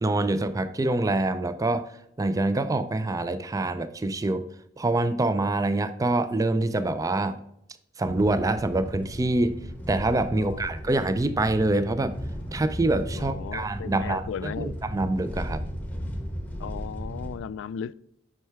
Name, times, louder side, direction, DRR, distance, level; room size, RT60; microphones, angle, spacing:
voice 1, 0.0-1.9 2.2-4.4 4.8-7.4 8.0-9.5 9.9-12.1 12.5-15.6, right 2 dB, 20° right, 0.4 m, -25 dB
sound 1, 8.1-17.4, equal, 10° left, 1.1 m, -36 dB
voice 2, 10.3-10.7 13.1-14.7 16.6-17.9, left 7 dB, 85° left, 0.3 m, -36 dB
7.6 x 5.5 x 3.4 m
head